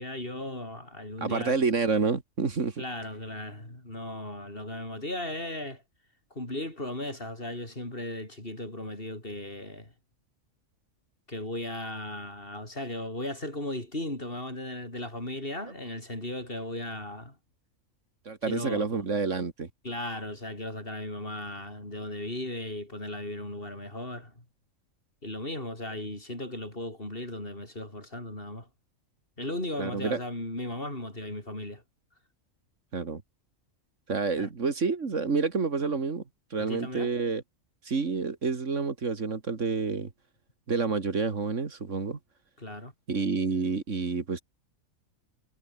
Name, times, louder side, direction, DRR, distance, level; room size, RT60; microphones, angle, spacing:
voice 1, 0.0-1.6 2.8-5.8 6.3-9.9 11.3-17.4 18.4-19.0 19.8-24.4 25.2-28.7 29.4-31.8 34.4-34.5 36.6-37.1 42.6-42.9, left 1 dB, 45° left, 6.4 m, -36 dB
voice 2, 1.2-2.8 18.3-19.7 29.8-30.2 32.9-33.2 34.1-36.2 36.5-37.4 37.9-40.1 40.7-42.2 43.1-44.4, right 4 dB, 65° right, 2.3 m, -28 dB
omnidirectional pair, 1.4 m